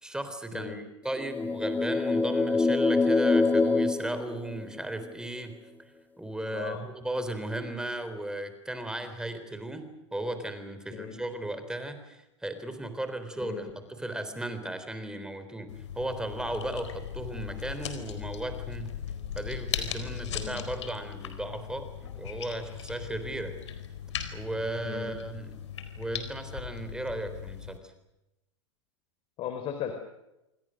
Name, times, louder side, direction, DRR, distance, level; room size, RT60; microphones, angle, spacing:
voice 1, 0.0-5.6 6.2-18.9 19.4-23.5 24.3-25.6 26.0-27.8, right 1 dB, 5° right, 9 dB, 3.8 m, -36 dB
voice 2, 0.5-0.8 6.5-6.8 10.9-11.2 13.4-13.6 20.3-20.6 24.8-25.2 29.4-29.9, left 9 dB, 35° left, 7 dB, 3.9 m, -37 dB
sound 1, 1.2-5.0, left 3 dB, 10° left, 1.5 m, -25 dB
sound 2, 15.7-27.8, left 9 dB, 70° left, 4.2 m, -38 dB
27.5 x 26.0 x 6.5 m, 0.93 s
figure-of-eight pair, 95°, 16 cm